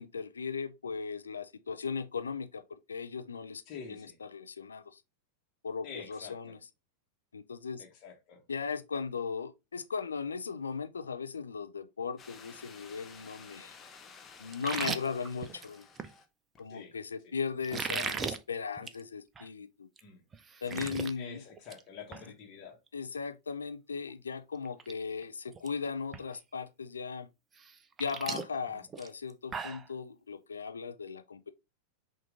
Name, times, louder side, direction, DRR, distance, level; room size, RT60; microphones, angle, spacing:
voice 1, 0.0-3.6 3.9-5.0 5.6-6.6 7.3-7.8 8.5-13.8 14.4-15.9 16.6-19.9 20.6-21.4 22.9-27.3 28.0-31.5, left 5 dB, 70° left, 0.4 m, -37 dB
voice 2, 3.7-4.2 5.8-6.6 7.8-8.4 16.7-17.0 20.0-20.2 21.2-22.8 28.7-28.8, left 6 dB, 40° left, 1.2 m, -47 dB
sound 1, 12.2-16.3 16.5-16.6, left 5 dB, 25° left, 0.7 m, -53 dB
sound 2, 14.5-16.1 17.6-18.4 18.8-19.0 19.4-19.5 20.0-20.1 20.3-21.1 21.5-21.8 22.1-22.2 24.1-24.2 24.6-24.9 25.2-25.7 26.1-26.2 27.6-29.9, right 5 dB, 20° right, 0.4 m, -37 dB
5.9 x 2.5 x 3.5 m
figure-of-eight pair, 90°, 0 cm